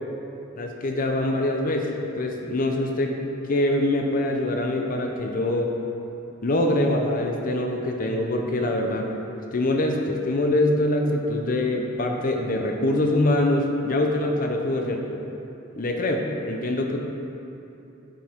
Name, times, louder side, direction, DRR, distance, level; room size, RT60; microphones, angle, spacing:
voice 1, 0.5-1.9 2.2-3.1 3.4-5.7 6.4-9.1 9.5-15.0 15.8-17.0, left 1 dB, 45° left, 2 dB, 0.7 m, -24 dB
10.0 x 5.4 x 4.5 m, 2.9 s
head